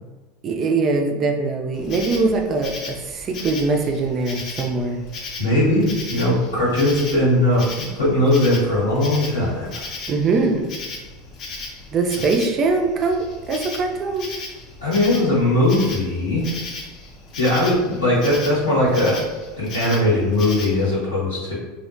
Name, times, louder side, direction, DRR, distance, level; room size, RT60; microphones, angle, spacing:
voice 1, 0.4-5.0 10.1-10.7 11.9-14.3, right 3 dB, 35° right, 3 dB, 0.4 m, -22 dB
Insect, 1.7-20.9, left 3 dB, 45° left, 0.5 m, -36 dB
voice 2, 5.4-9.8 14.8-16.5 17.4-19.2 19.6-21.5, left 1 dB, 85° left, -9 dB, 1.3 m, -19 dB
2.7 x 2.1 x 2.5 m, 1.2 s
figure-of-eight pair, 80°, 0 cm